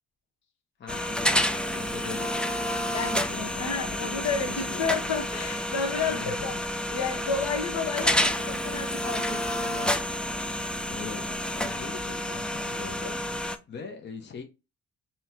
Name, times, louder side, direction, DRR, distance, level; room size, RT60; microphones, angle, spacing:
voice 1, 0.8-4.9 6.0-6.6 10.9-13.2 13.7-14.4, left 6 dB, 35° left, 0.7 m, -41 dB
sound 1, 0.9-13.6, left 1 dB, 5° left, 0.4 m, -29 dB
voice 2, 2.9-6.5 6.9-10.0, left 5 dB, 65° left, 1.1 m, -31 dB
5.5 x 2.2 x 2.8 m
cardioid pair, 90°, 30 cm